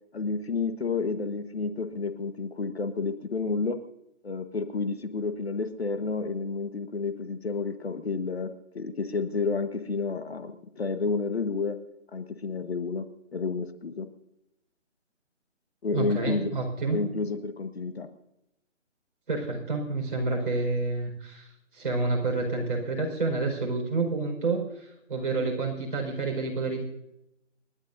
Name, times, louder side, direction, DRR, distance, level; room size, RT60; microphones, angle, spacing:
voice 1, 0.1-3.8 4.2-8.5 8.7-11.8 12.1-13.0 13.3-14.1 15.8-16.5 16.9-18.1, left 4 dB, 55° left, 9 dB, 1.4 m, -30 dB
voice 2, 15.9-17.0 19.3-21.5 21.7-26.8, right 3 dB, 45° right, -1 dB, 4.8 m, -29 dB
29.0 x 11.0 x 2.6 m, 0.84 s
hypercardioid pair, 175°, 37 cm